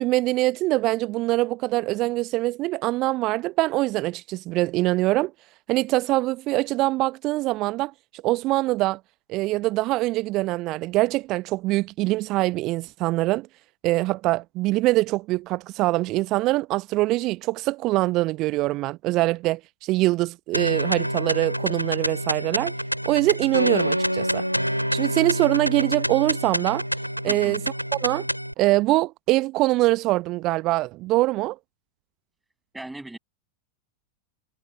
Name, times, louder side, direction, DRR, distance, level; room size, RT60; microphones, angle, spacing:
voice 1, 0.0-5.3 5.7-7.9 8.2-9.0 9.3-13.5 13.8-22.7 23.0-24.4 24.9-26.8 27.2-27.6 28.0-28.3 28.6-31.6, right 19 dB, 40° right, 0.9 m, -23 dB
sound 1, 20.5-28.5, equal, 90° right, 3.7 m, -27 dB
voice 2, 27.3-27.6 32.7-33.2, right 2 dB, 5° right, 7.1 m, -38 dB
figure-of-eight pair, 90°, 0 cm